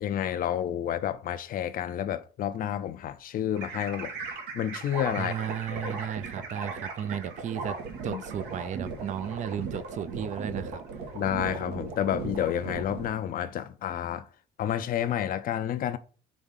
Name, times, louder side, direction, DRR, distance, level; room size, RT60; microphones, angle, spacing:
voice 1, 0.0-4.1 4.5-5.3 5.7-5.9 8.1-8.2 11.1-14.3 14.6-16.0, left 10 dB, 55° left, 0.6 m, -30 dB
sound 1, 3.6-13.1, right 4 dB, 85° right, 1.5 m, -37 dB
voice 2, 5.2-7.8 8.0-10.8, right 9 dB, 45° right, 0.5 m, -34 dB
5.1 x 3.6 x 5.6 m
cardioid pair, 110°, 17 cm